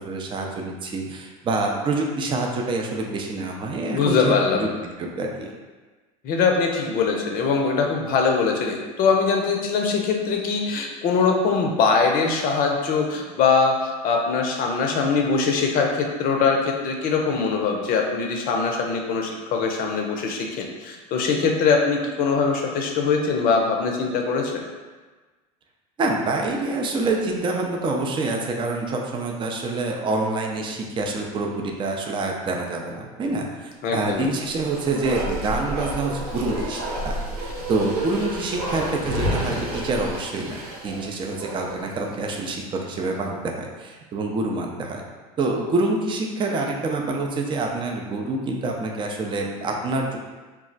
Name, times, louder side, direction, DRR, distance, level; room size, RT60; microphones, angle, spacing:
voice 1, 0.0-5.5 26.0-45.0 45.4-50.2, right 2 dB, 25° right, 1 dB, 0.4 m, -27 dB
voice 2, 3.9-4.7 6.2-24.6 33.8-34.3, left 5 dB, 50° left, 2 dB, 0.6 m, -22 dB
Bark, 34.3-41.9 42.2-42.3, right 1 dB, 80° right, 1.1 m, -30 dB
2.3 x 2.0 x 3.8 m, 1.3 s
hypercardioid pair, 90°, 19 cm